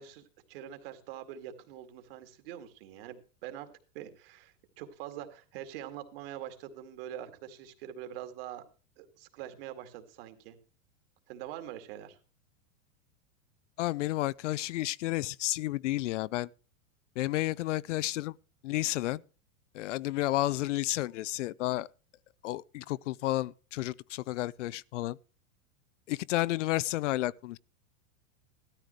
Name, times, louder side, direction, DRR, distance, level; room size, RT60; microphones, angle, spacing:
voice 1, 0.0-8.6 9.0-10.6 11.3-12.2, right 11 dB, 45° right, 2.3 m, -44 dB
voice 2, 13.8-16.5 17.2-18.3 18.6-19.2 19.7-21.9 22.4-25.2 26.1-27.6, left 16 dB, 65° left, 0.5 m, -31 dB
17.0 x 13.0 x 3.2 m
supercardioid pair, 170°, 39 cm